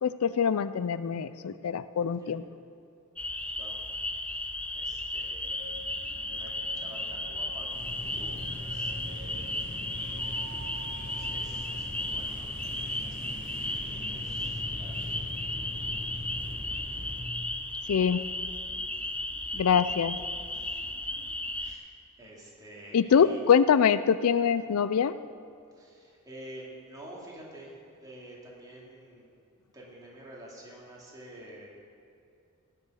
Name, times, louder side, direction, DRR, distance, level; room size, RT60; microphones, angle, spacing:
voice 1, 0.0-2.4 17.9-18.3 19.5-20.2 22.9-25.1, left 7 dB, 85° left, 15 dB, 0.4 m, -24 dB
sound 1, 3.2-21.7, left 1 dB, 5° left, 0.4 m, -35 dB
voice 2, 4.7-5.7 6.3-9.6 11.2-15.3 20.5-21.0 21.6-21.9 22.2-23.4 25.7-29.4 29.7-31.7, right 1 dB, 15° right, -4 dB, 2.6 m, -49 dB
sound 2, 5.5-18.5, right 1 dB, 65° right, 2.3 m, -51 dB
sound 3, 7.7-17.2, left 1 dB, 35° right, 3.7 m, -41 dB
17.5 x 6.8 x 6.3 m, 2.5 s
head